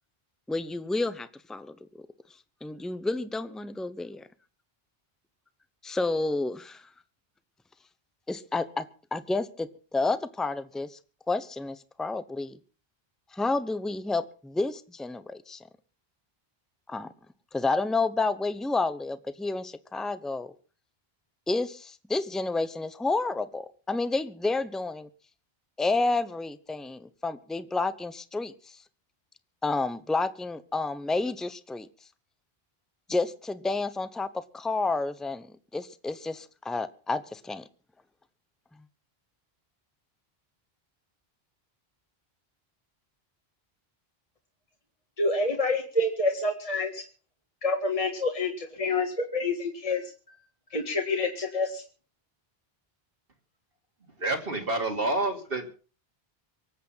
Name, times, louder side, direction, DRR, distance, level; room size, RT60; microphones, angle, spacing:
voice 1, 0.5-2.1 2.6-4.2 5.8-6.9 8.3-8.9 9.1-11.0 11.3-12.6 13.3-15.7 16.9-17.1 17.5-20.5 21.5-25.1 25.8-28.8 29.6-31.9 33.1-37.6, left 3 dB, ahead, 0.8 m, -30 dB
voice 2, 45.2-47.0 47.6-50.1 50.7-51.8, left 2 dB, 35° left, 1.9 m, -27 dB
voice 3, 54.2-55.7, right 2 dB, 65° right, 2.9 m, -28 dB
24.5 x 8.4 x 5.7 m
omnidirectional pair, 1.0 m